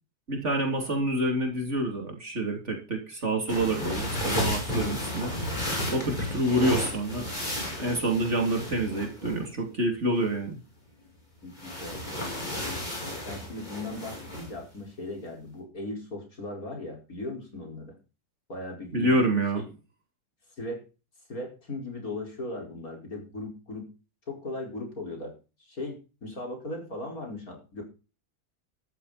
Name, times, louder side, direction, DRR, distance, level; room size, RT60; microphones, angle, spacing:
voice 1, 0.3-5.4 5.9-10.6 18.9-19.6, right 1 dB, 45° right, 3 dB, 3.3 m, -27 dB
sound 1, 3.5-9.4 11.5-14.5, left 1 dB, 25° left, 5.6 m, -33 dB
voice 2, 11.4-12.2 13.3-18.0 18.5-19.1 19.5-19.7 20.6-20.8 21.3-23.9 24.3-25.3 25.6-27.8, left 2 dB, 60° left, 1 dB, 5.5 m, -38 dB
13.0 x 11.5 x 4.2 m, 0.33 s
omnidirectional pair, 1.8 m